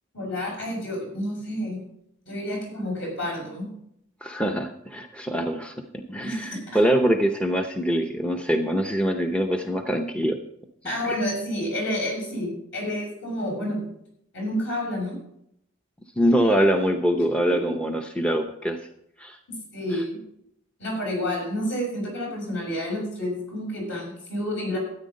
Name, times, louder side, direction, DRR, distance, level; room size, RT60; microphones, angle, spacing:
voice 1, 0.1-1.8 2.3-3.7 6.2-6.8 10.8-13.8 14.3-15.2 17.2-17.7 19.7-20.2 20.8-24.8, equal, 60° left, -1 dB, 6.3 m, -29 dB
voice 2, 4.2-10.4 11.0-11.2 16.2-18.8 19.2-19.4, equal, 5° left, 4 dB, 0.7 m, -24 dB
13.0 x 9.3 x 5.3 m, 0.74 s
head